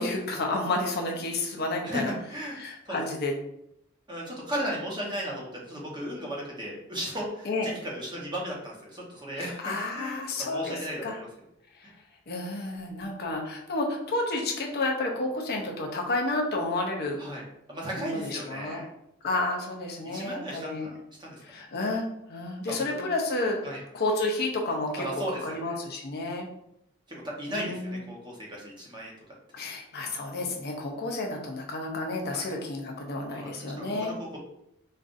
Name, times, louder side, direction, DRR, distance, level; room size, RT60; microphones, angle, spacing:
voice 1, 0.0-2.1 2.6-3.3 7.5-7.7 9.4-11.2 11.8-11.9 12.3-17.2 17.9-18.8 19.2-20.9 21.4-23.6 23.9-26.5 27.5-28.0 29.5-34.1, left 2 dB, 50° left, 1 dB, 0.6 m, -31 dB
voice 2, 1.8-2.6 2.8-3.1 4.1-11.3 17.2-18.9 20.1-21.4 22.6-23.1 23.6-23.8 25.0-25.6 27.1-29.1 29.6-29.7 30.0-30.1 32.3-32.5 33.3-33.5 33.8-34.4, equal, 20° right, -3 dB, 0.9 m, -36 dB
5.2 x 2.4 x 2.5 m, 0.77 s
head